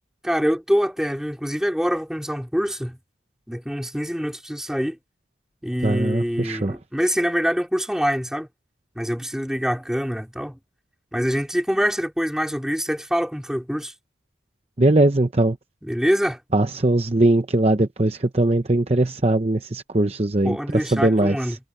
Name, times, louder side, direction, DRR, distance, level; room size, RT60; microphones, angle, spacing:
voice 1, 0.2-3.0 3.5-5.0 5.6-8.5 9.0-10.6 11.1-13.9 15.8-16.4 20.4-21.6, equal, 5° right, 4.2 m, -25 dB
voice 2, 5.8-6.7 14.8-15.6 16.5-21.4, right 2 dB, 35° right, 0.8 m, -20 dB
head